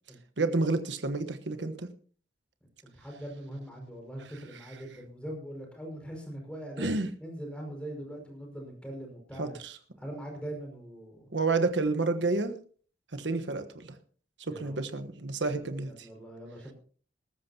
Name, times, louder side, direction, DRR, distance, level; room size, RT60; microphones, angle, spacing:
voice 1, 0.4-1.9 6.8-7.1 9.4-9.8 11.3-12.5 13.1-14.0 14.4-16.1, right 3 dB, 80° right, 9 dB, 1.2 m, -30 dB
voice 2, 2.9-9.5 10.0-11.3 14.5-14.8 15.4-16.7, right 1 dB, 5° left, 1 dB, 5.5 m, -42 dB
20.5 x 13.5 x 2.9 m, 0.44 s
head